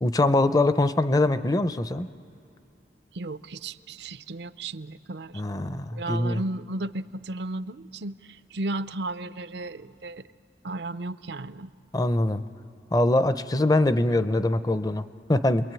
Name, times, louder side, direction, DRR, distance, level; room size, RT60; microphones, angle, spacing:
voice 1, 0.0-2.1 5.3-6.4 11.9-12.4 12.9-15.7, left 2 dB, 20° left, 12 dB, 0.6 m, -23 dB
voice 2, 3.1-10.2 10.6-11.7, right 2 dB, 70° right, 14 dB, 0.6 m, -34 dB
30.0 x 22.0 x 9.0 m, 2.4 s
head